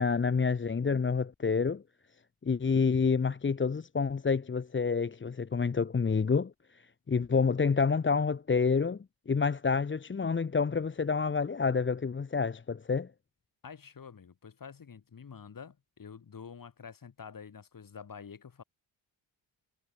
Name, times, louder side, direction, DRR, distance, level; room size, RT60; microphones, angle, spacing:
voice 1, 0.0-1.8 2.4-13.1, left 5 dB, 25° left, 1.1 m, -28 dB
voice 2, 13.6-18.6, left 6 dB, 45° left, 7.3 m, -48 dB
cardioid pair, 100°, 48 cm